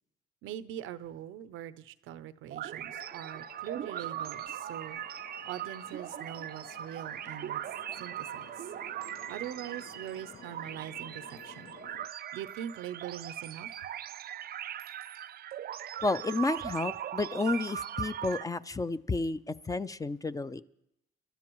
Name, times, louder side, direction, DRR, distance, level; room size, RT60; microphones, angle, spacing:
voice 1, 0.4-5.0 5.5-7.6 8.0-8.7 9.3-11.7 12.3-13.7, right 11 dB, 90° right, 15 dB, 0.6 m, -42 dB
sound 1, 2.5-18.4, right 11 dB, 50° right, 0.4 m, -40 dB
sound 2, 2.9-12.1, left 9 dB, 65° left, 0.6 m, -54 dB
voice 2, 16.0-20.6, left 3 dB, 15° left, 13 dB, 0.5 m, -31 dB
25.5 x 12.5 x 3.0 m, 0.81 s
cardioid pair, 90°, 20 cm